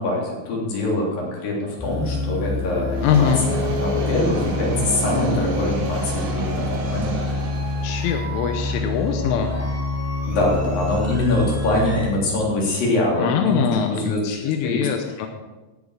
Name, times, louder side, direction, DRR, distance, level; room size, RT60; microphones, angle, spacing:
voice 1, 0.0-7.1 10.3-13.6 13.9-14.3 14.6-14.9, left 2 dB, 50° left, -3 dB, 4.8 m, -24 dB
sound 1, 1.8-12.1, left 2 dB, 15° left, 0.5 m, -26 dB
sound 2, 2.9-8.1, right 2 dB, 55° right, 3.7 m, -32 dB
voice 2, 3.0-3.5 7.8-9.6 13.2-15.3, left 8 dB, 85° left, 4 dB, 3.4 m, -22 dB
18.0 x 8.1 x 4.9 m, 1.2 s
omnidirectional pair, 5.5 m